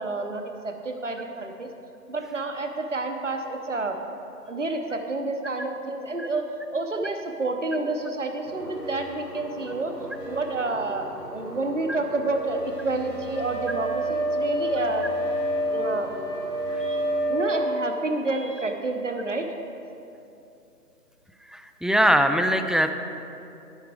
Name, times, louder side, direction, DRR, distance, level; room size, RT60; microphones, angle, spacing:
voice 1, 0.0-1.7 2.1-4.0 4.5-9.9 10.3-15.1 15.7-16.1 16.8-17.0 17.3-19.5, right 2 dB, 50° right, 4 dB, 0.9 m, -29 dB
sound 1, 8.4-17.3, equal, 85° right, 2.6 m, -39 dB
Wind instrument woodwind instrument, 13.3-17.7, right 1 dB, 55° left, 2.4 m, -27 dB
voice 2, 21.5-22.9, equal, ahead, 8 dB, 0.3 m, -21 dB
10.5 x 9.1 x 4.8 m, 2.8 s
figure-of-eight pair, 180°, 49 cm